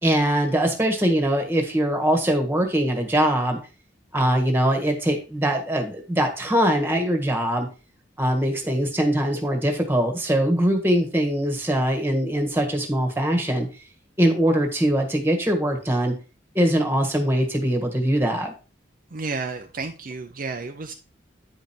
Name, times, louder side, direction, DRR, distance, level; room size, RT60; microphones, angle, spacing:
voice 1, 0.0-3.6 4.1-7.7 8.2-13.7 14.2-16.1 16.5-18.5, right 1 dB, 10° right, 4 dB, 1.6 m, -22 dB
voice 2, 19.1-20.9, right 4 dB, 45° right, 5 dB, 0.6 m, -31 dB
9.5 x 5.2 x 4.4 m, 0.33 s
head